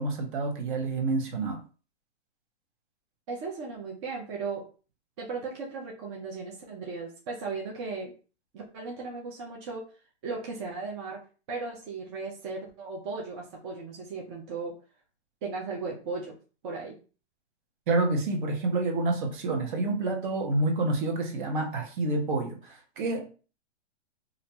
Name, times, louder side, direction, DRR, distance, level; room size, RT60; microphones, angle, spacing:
voice 1, 0.0-1.6 17.9-23.3, right 2 dB, 45° right, 3 dB, 0.8 m, -28 dB
voice 2, 3.3-4.7 5.2-8.1 8.5-9.8 10.2-11.2 11.5-14.8 15.4-16.4 16.6-17.0, right 4 dB, 25° right, -2 dB, 0.5 m, -36 dB
2.5 x 2.1 x 2.8 m, 0.36 s
hypercardioid pair, 135°, 34 cm